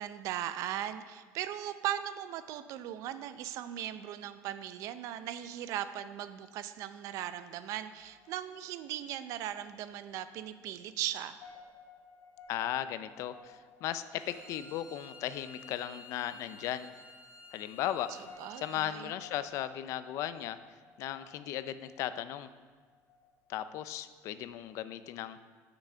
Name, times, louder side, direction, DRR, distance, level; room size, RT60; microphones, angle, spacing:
voice 1, 0.0-11.4 18.4-19.2, right 11 dB, 55° right, 12 dB, 0.5 m, -38 dB
sound 1, 8.0-24.4, left 5 dB, 90° left, 1.8 m, -59 dB
voice 2, 12.5-16.9 17.5-18.1 18.6-20.6 21.0-22.5 23.5-25.4, left 12 dB, 50° left, 13 dB, 0.4 m, -36 dB
Bowed string instrument, 14.2-18.9, left 1 dB, 15° right, 3.2 m, -52 dB
8.3 x 6.0 x 6.7 m, 1.5 s
cardioid pair, 180°, 6 cm